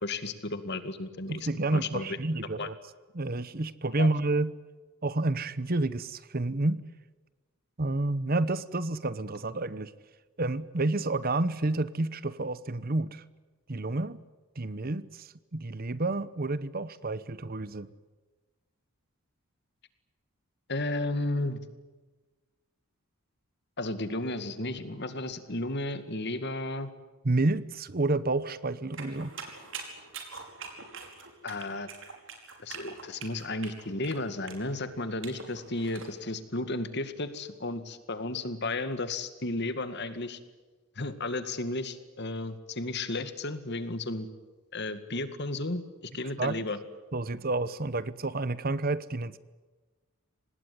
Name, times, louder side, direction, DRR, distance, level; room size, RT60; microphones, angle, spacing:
voice 1, 0.0-2.1 2.6-2.7 4.0-4.1 20.7-21.6 23.8-26.9 31.4-31.9 32.6-40.4 41.0-44.3 44.7-46.8, left 2 dB, 50° left, 11 dB, 2.1 m, -33 dB
voice 2, 1.3-2.7 3.1-4.5 5.0-6.8 7.8-9.9 10.4-13.2 13.7-14.2 14.6-17.9 27.2-29.3 46.4-46.6 47.1-49.4, right 2 dB, 40° right, 16 dB, 0.9 m, -29 dB
sound 1, 28.9-36.1, right 5 dB, 60° right, 5.1 m, -44 dB
26.0 x 19.5 x 9.6 m, 1.2 s
head